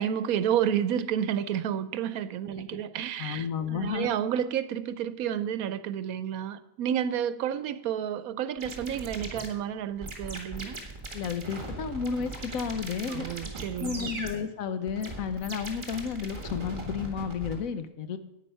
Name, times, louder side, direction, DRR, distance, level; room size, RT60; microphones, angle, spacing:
voice 1, 0.0-10.8 13.1-14.1, right 9 dB, 90° right, 14 dB, 1.1 m, -30 dB
voice 2, 3.2-4.2 11.1-13.3 13.8-18.2, left 6 dB, 75° left, 11 dB, 1.2 m, -32 dB
sound 1, 8.6-17.6, right 2 dB, 35° right, 2.0 m, -39 dB
10.0 x 9.0 x 5.5 m, 0.88 s
omnidirectional pair, 1.5 m